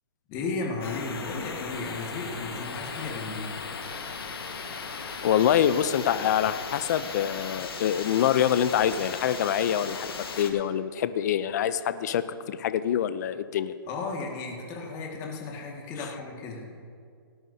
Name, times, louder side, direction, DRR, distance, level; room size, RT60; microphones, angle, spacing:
voice 1, 0.3-3.6 13.9-16.8, left 3 dB, 25° left, -1 dB, 1.9 m, -34 dB
sound 1, 0.8-10.5, left 5 dB, 75° left, 1.5 m, -37 dB
voice 2, 5.2-13.7, left 9 dB, 45° left, 13 dB, 0.5 m, -25 dB
18.0 x 10.5 x 2.8 m, 2.2 s
hypercardioid pair, 150°, 13 cm